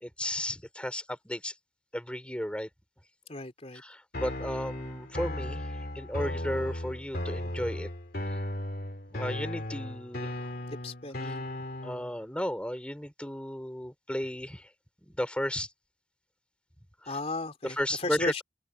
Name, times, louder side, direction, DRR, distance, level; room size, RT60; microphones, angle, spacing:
voice 1, 0.0-1.5 1.9-2.7 3.7-5.7 6.0-7.9 9.1-10.4 11.2-11.3 11.8-14.7 15.0-15.7 17.0-17.1 17.6-18.3, equal, 5° left, 3.6 m, -34 dB
voice 2, 3.3-3.8 10.7-11.5 17.1-18.4, left 2 dB, 35° left, 3.3 m, -35 dB
sound 1, 4.1-12.1, left 1 dB, 55° left, 2.6 m, -36 dB
head